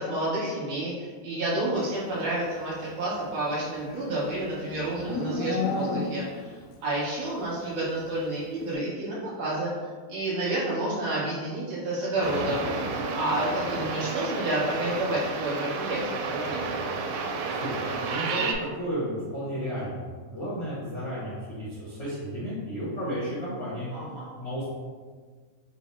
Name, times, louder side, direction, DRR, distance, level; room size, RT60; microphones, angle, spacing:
voice 1, 0.0-9.7 10.1-12.6 13.1-16.7 23.9-24.3, right 1 dB, 65° right, -7 dB, 2.2 m, -30 dB
Livestock farm animals working animals, 3.2-6.5, left 3 dB, 80° left, 2.3 m, -32 dB
sound 1, 12.2-18.5, right 4 dB, 85° right, 2.2 m, -31 dB
voice 2, 17.6-23.9 24.4-24.7, equal, 65° left, -10 dB, 1.1 m, -33 dB
5.5 x 2.1 x 4.2 m, 1.5 s
omnidirectional pair, 4.1 m